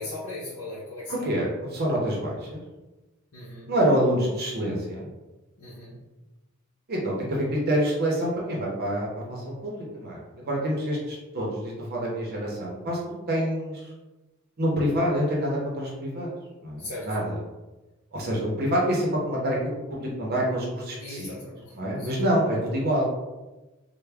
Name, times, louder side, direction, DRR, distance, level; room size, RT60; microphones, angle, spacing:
voice 1, 0.0-1.3 3.3-3.7 5.6-6.0 16.8-17.1 21.0-22.1, left 2 dB, 70° left, -8 dB, 0.7 m, -38 dB
voice 2, 1.1-2.6 3.7-5.1 6.9-13.0 13.3-13.9 14.6-16.3 16.6-17.4 18.1-19.6 19.9-21.3 21.8-23.1, equal, 45° right, -3 dB, 0.7 m, -27 dB
3.3 x 2.1 x 3.4 m, 1.1 s
head